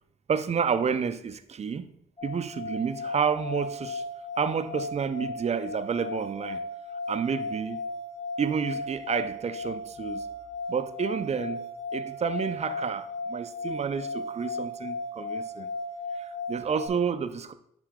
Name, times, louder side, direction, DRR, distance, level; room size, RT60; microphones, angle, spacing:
voice 1, 0.3-1.9 2.2-4.0 4.4-6.6 7.1-7.8 8.4-10.3 10.7-11.6 11.9-15.7 16.2-17.5, right 6 dB, 40° right, 0.6 m, -30 dB
sound 1, 2.2-16.9, left 2 dB, 40° left, 2.0 m, -36 dB
10.0 x 3.3 x 3.7 m
supercardioid pair, 55°, 16 cm